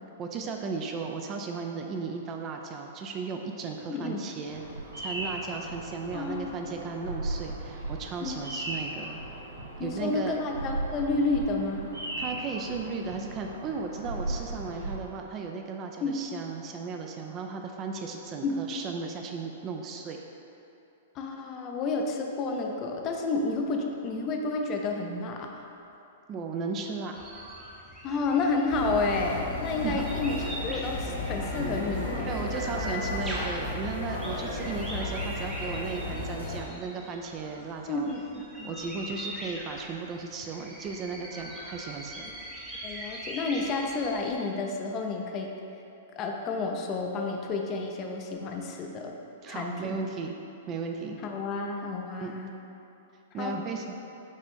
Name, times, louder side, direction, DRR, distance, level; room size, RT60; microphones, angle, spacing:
voice 1, 0.2-4.6 5.0-9.2 9.8-10.4 12.2-20.2 26.3-27.2 29.8-30.0 32.3-38.1 38.6-42.3 49.4-50.3 50.7-51.2 52.2-52.3 53.3-53.8, right 4 dB, 30° right, 3 dB, 0.3 m, -35 dB
voice 2, 3.9-4.2 6.1-6.5 8.2-8.4 9.8-11.9 16.0-16.2 18.4-18.5 21.2-25.5 28.0-32.4 37.9-38.7 42.8-45.5 46.2-49.1 49.5-50.0 51.2-52.5 53.4-53.6, left 3 dB, 35° left, 2 dB, 0.5 m, -30 dB
Bird vocalization bird call bird song, 4.5-15.0, right 1 dB, 75° right, 1.5 m, -37 dB
sound 1, 27.1-44.4, equal, 10° right, 0.7 m, -42 dB
sound 2, 28.7-36.6, left 2 dB, 75° left, 1.2 m, -34 dB
5.2 x 2.5 x 3.5 m, 2.8 s
figure-of-eight pair, 105°, 0 cm